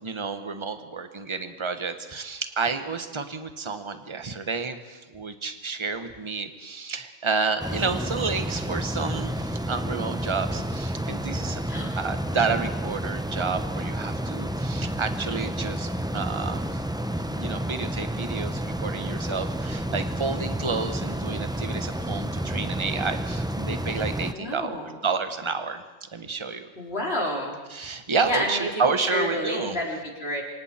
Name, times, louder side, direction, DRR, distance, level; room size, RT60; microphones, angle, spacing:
voice 1, 0.0-11.6 12.0-16.8 17.3-25.8 26.1-26.7 27.7-29.8, right 4 dB, 25° right, 8 dB, 1.2 m, -30 dB
sound 1, 7.6-24.3, right 1 dB, 5° right, 0.4 m, -30 dB
voice 2, 24.3-25.0 26.8-27.6 28.2-28.7 29.0-30.4, left 1 dB, 50° left, -1 dB, 3.5 m, -29 dB
27.5 x 25.0 x 4.4 m, 1.2 s
omnidirectional pair, 1.4 m